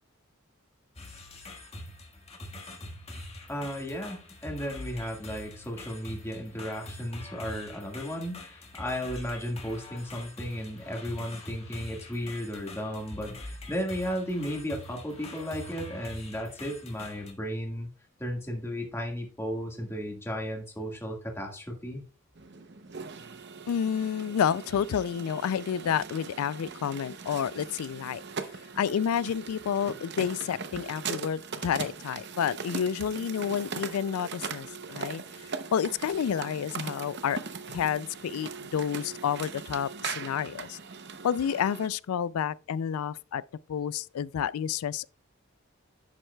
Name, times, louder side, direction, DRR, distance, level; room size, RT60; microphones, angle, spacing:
sound 1, 1.0-17.3, left 1 dB, 30° left, 1.6 m, -44 dB
voice 1, 3.5-17.9 18.2-22.0, equal, 10° left, 1.7 m, -34 dB
sound 2, 22.4-41.9, right 5 dB, 50° right, 0.7 m, -40 dB
voice 2, 23.7-28.2 28.8-37.4 37.7-40.8 41.2-43.4 43.7-45.1, left 8 dB, 85° left, 0.3 m, -30 dB
11.0 x 7.7 x 2.3 m
head